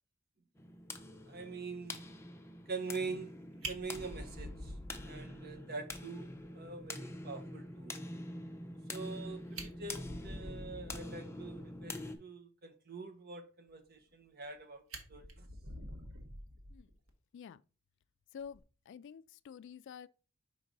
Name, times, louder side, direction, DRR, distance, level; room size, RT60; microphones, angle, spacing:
sound 1, 0.6-12.2, left 1 dB, 15° left, 0.6 m, -46 dB
voice 1, 1.3-2.1 2.7-3.3 3.6-4.7 5.0-8.0 8.9-14.8 15.1-15.5, right 4 dB, 50° right, 1.0 m, -44 dB
Fire, 3.6-5.5 5.9-6.0 6.4-6.5 6.8-6.9 9.1-9.2 9.4-11.2 14.0-14.5 14.9-17.1 18.4-18.6, right 1 dB, 80° right, 1.3 m, -46 dB
voice 2, 18.3-20.1, left 7 dB, 60° left, 0.3 m, -49 dB
5.2 x 4.7 x 3.9 m
head